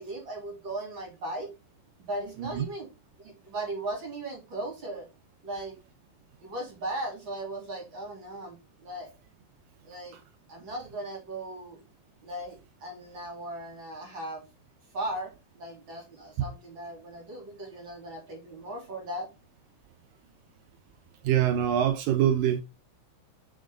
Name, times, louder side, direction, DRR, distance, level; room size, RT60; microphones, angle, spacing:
voice 1, 0.0-1.5 2.0-2.9 3.2-5.1 5.4-5.7 6.4-9.1 9.8-10.2 10.5-11.8 12.2-14.4 14.9-19.3, right 1 dB, 30° right, 3.7 m, -37 dB
voice 2, 21.2-22.6, right 10 dB, 80° right, 2.1 m, -24 dB
6.5 x 6.2 x 3.7 m
omnidirectional pair, 4.6 m